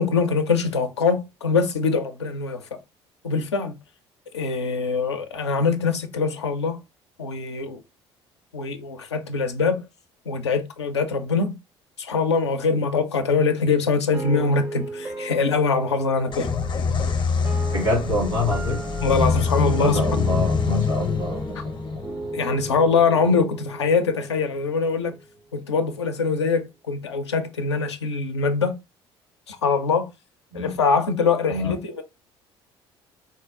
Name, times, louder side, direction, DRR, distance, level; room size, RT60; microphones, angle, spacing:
voice 1, 0.0-2.7 3.2-3.7 4.3-6.8 7.2-7.8 8.5-9.9 10.3-11.5 12.0-16.5 19.0-20.0 22.3-25.2 25.5-28.8 29.5-30.1 30.5-32.0, left 4 dB, 85° left, 0.4 m, -23 dB
sound 1, 14.1-25.2, right 3 dB, 15° right, 0.4 m, -36 dB
sound 2, 16.3-23.9, left 5 dB, 35° left, 0.6 m, -25 dB
voice 2, 17.7-18.8 19.8-22.0 30.5-30.8 31.5-31.7, left 1 dB, 85° right, 1.5 m, -26 dB
3.8 x 2.2 x 2.4 m
figure-of-eight pair, 55°, 14 cm